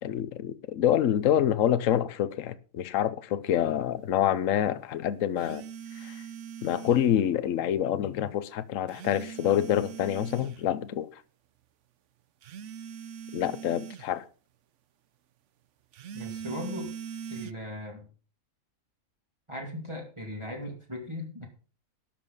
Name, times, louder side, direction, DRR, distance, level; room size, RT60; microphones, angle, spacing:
voice 1, 0.0-5.6 6.0-6.2 6.6-11.1 13.3-14.2, left 10 dB, 70° left, 1.1 m, -27 dB
sound 1, 5.4-7.1 8.9-10.6 12.4-14.1 15.9-17.5, right 7 dB, 65° right, 1.0 m, -41 dB
voice 2, 16.1-16.9 17.3-18.1 19.5-21.5, left 1 dB, 20° right, 2.7 m, -38 dB
12.5 x 7.4 x 5.5 m
omnidirectional pair, 1.5 m